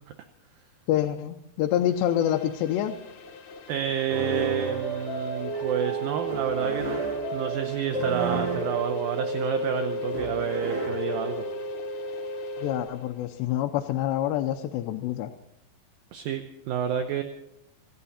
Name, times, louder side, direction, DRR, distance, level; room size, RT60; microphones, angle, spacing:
voice 1, 0.9-2.9 12.6-15.3, left 11 dB, 80° left, 4 dB, 2.9 m, -26 dB
sound 1, 1.6-13.3, left 4 dB, 65° left, 3.3 m, -47 dB
voice 2, 3.7-7.0 7.3-11.4 16.1-17.2, right 9 dB, 75° right, 7 dB, 2.2 m, -29 dB
sound 2, 4.1-11.8, right 1 dB, 45° right, 7.2 m, -33 dB
sound 3, 4.8-12.8, right 2 dB, 40° left, 5.4 m, -34 dB
26.5 x 11.5 x 4.2 m, 0.84 s
omnidirectional pair, 5.0 m